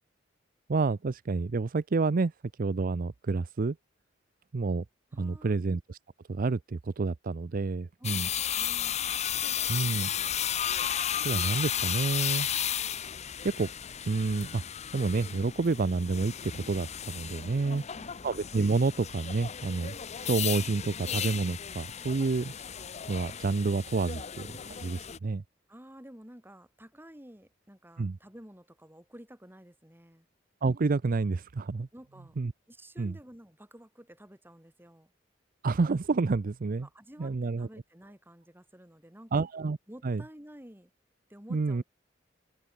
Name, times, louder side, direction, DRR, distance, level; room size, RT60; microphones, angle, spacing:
voice 1, 0.7-2.3 2.6-3.8 4.5-4.8 5.2-6.0 6.3-8.3 9.7-10.1 11.2-12.5 13.4-13.7 14.0-14.6 14.9-16.3 16.7-17.8 18.2-19.9 20.2-22.5 23.1-24.2 24.7-25.4 28.0-28.2 30.6-31.9 32.4-32.5 33.0-33.1 35.6-36.9 37.2-37.7 39.3-39.8 40.0-40.2 41.5-41.8, right 3 dB, 50° right, 0.5 m, -29 dB
voice 2, 5.1-5.6 8.0-9.0 9.8-10.4 17.6-18.1 24.1-24.3 25.7-30.3 31.9-32.4 32.7-35.1 36.8-39.5 39.9-40.9 41.3-41.8, equal, 10° right, 6.3 m, -51 dB
sound 1, 8.0-25.2, left 9 dB, 35° left, 0.7 m, -34 dB
head